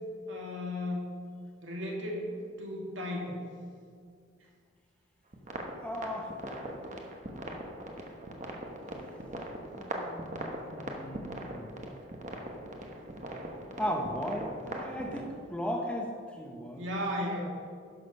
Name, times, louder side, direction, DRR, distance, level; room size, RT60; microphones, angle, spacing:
voice 1, 0.3-1.1 1.6-3.4 16.8-17.4, left 1 dB, 85° right, -1 dB, 2.0 m, -35 dB
sound 1, 5.3-15.2, right 1 dB, 40° right, 1.1 m, -40 dB
voice 2, 5.7-6.3 9.7-11.8 13.8-16.9, equal, 5° left, 1 dB, 0.9 m, -37 dB
11.5 x 6.5 x 5.5 m, 2.2 s
head